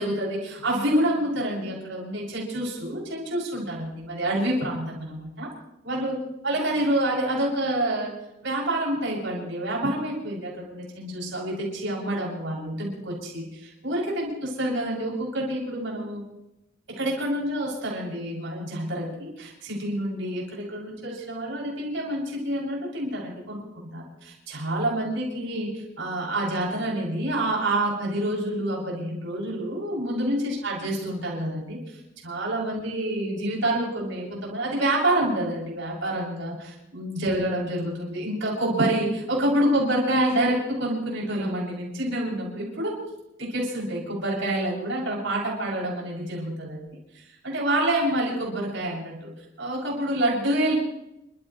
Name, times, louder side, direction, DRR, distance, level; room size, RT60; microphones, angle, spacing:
voice 1, 0.0-5.5 5.8-8.1 8.4-16.2 16.9-31.8 32.2-42.9 43.4-46.9 47.1-49.3 49.6-50.8, right 1 dB, 70° right, -4 dB, 7.2 m, -27 dB
30.0 x 14.0 x 3.2 m, 0.87 s
head